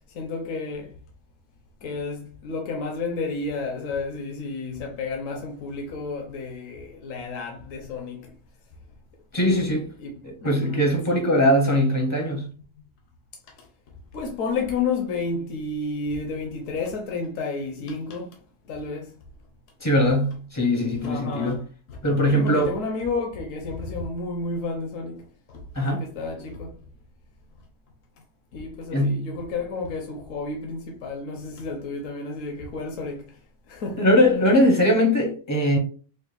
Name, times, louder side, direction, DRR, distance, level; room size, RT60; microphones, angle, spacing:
voice 1, 0.1-0.9 1.8-8.3 9.4-9.7 10.0-10.1 10.4-10.8 13.6-13.7 14.1-18.4 18.7-19.1 21.0-22.0 22.3-26.8 28.5-33.4 33.7-34.1, left 3 dB, 75° left, 1.1 m, -31 dB
voice 2, 9.3-9.9 10.2-12.5 19.8-21.6 22.0-22.7 25.7-26.0 28.9-29.3 34.0-35.8, equal, 25° left, 0.5 m, -21 dB
5.1 x 2.2 x 2.4 m
omnidirectional pair, 1.4 m